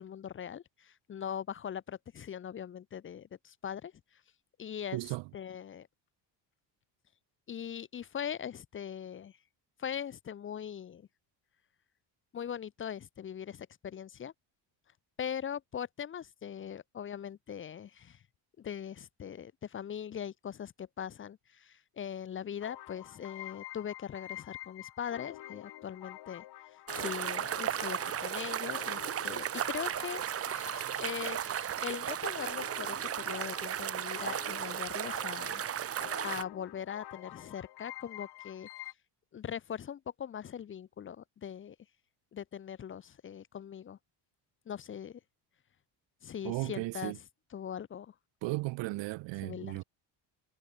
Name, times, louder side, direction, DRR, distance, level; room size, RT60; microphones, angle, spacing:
voice 1, 0.0-4.2 4.6-5.0 5.3-5.9 7.5-9.4 9.8-11.1 12.3-14.3 15.2-18.2 18.6-30.2 31.0-31.4 31.8-35.6 36.2-38.7 39.3-41.8 42.3-44.0 44.7-45.2 46.2-47.1 47.5-48.1 49.4-49.8, left 8 dB, 25° left, 0.7 m, -41 dB
voice 2, 4.9-5.3 46.4-47.2 48.4-49.8, right 22 dB, 70° right, 0.8 m, -35 dB
sound 1, 22.6-38.9, left 15 dB, 55° left, 3.6 m, -48 dB
sound 2, 26.9-36.4, right 10 dB, 30° right, 1.0 m, -35 dB
cardioid pair, 160°, 45 cm